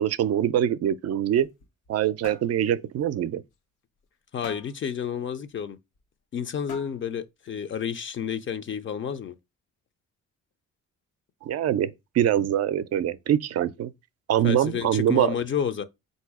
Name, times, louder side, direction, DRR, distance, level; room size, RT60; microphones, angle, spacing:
voice 1, 0.0-1.5 1.9-3.4 11.4-13.9 14.3-15.3, right 10 dB, 55° right, 0.4 m, -24 dB
sound 1, 1.2-2.0 2.2-2.6 3.0-3.1 3.5-3.6 4.4-4.8 6.0-6.1 6.7-7.2, left 6 dB, 80° left, 0.8 m, -43 dB
voice 2, 4.3-5.8 6.3-9.4 14.4-15.8, left 8 dB, 40° left, 0.5 m, -30 dB
3.8 x 2.7 x 4.7 m
cardioid pair, 90°, 30 cm